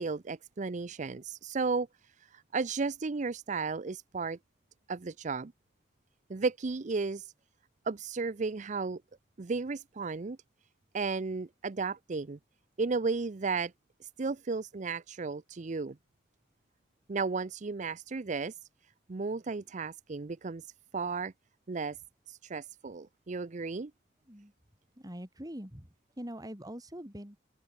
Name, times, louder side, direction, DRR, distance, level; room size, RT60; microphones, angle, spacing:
voice 1, 0.0-1.9 2.3-4.4 4.9-5.5 6.3-7.3 7.9-9.0 9.4-10.4 10.9-12.4 12.8-13.7 14.2-16.0 17.1-18.5 19.1-20.7 20.9-21.3 21.7-22.0 22.3-23.9, right 4 dB, 40° right, 0.6 m, -34 dB
voice 2, 25.0-25.9 26.2-27.4, equal, 20° right, 5.2 m, -43 dB
open air
head